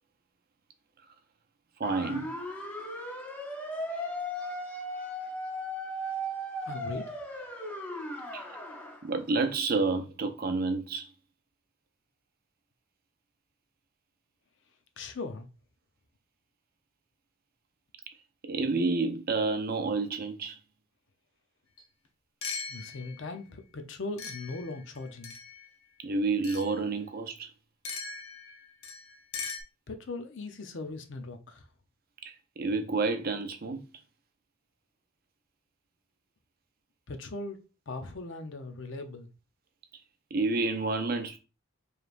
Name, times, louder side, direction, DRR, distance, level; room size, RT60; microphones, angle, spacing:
sound 1, 1.8-9.0, equal, 10° left, 0.7 m, -37 dB
voice 1, 1.8-2.4 8.3-8.5 9.0-11.1 18.4-20.6 26.0-27.5 32.2-33.8 40.3-41.4, right 3 dB, 45° right, 0.5 m, -29 dB
voice 2, 6.7-7.4 15.0-15.5 22.7-25.3 29.9-31.7 37.1-37.6 37.9-39.3, left 3 dB, 60° left, 0.6 m, -39 dB
sound 2, 21.8-21.9 22.4-23.3 24.2-25.7 26.4-26.7 27.9-29.6, left 5 dB, 90° left, 0.8 m, -40 dB
5.0 x 3.2 x 2.5 m
head